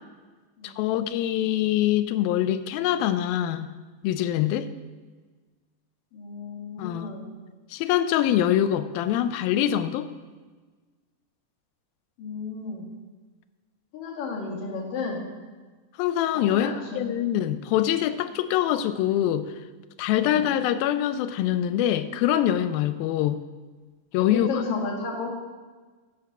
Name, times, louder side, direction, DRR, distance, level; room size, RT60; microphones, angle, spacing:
voice 1, 0.6-3.7 4.0-4.7 6.8-7.1 7.7-10.1 16.0-19.5 20.0-23.4 24.1-24.6, left 11 dB, 90° left, 12 dB, 2.5 m, -24 dB
voice 2, 6.1-7.3 12.2-12.9 13.9-15.3 16.3-17.1 20.2-20.5 24.3-25.3, left 4 dB, 70° left, -1 dB, 3.7 m, -33 dB
10.5 x 8.7 x 5.9 m, 1.3 s
omnidirectional pair, 4.1 m